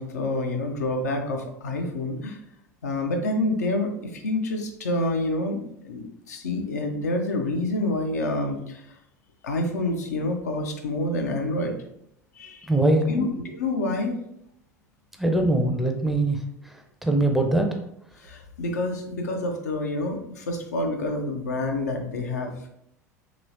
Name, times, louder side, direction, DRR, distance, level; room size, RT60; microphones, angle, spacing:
voice 1, 0.0-2.4 2.8-9.0 9.4-11.7 12.4-12.7 13.1-14.2 18.2-22.7, left 2 dB, 75° left, 3 dB, 0.5 m, -28 dB
voice 2, 12.7-13.3 15.2-16.4 17.0-17.7, right 2 dB, ahead, 3 dB, 0.5 m, -21 dB
3.0 x 2.9 x 2.6 m, 0.75 s
figure-of-eight pair, 70°, 9 cm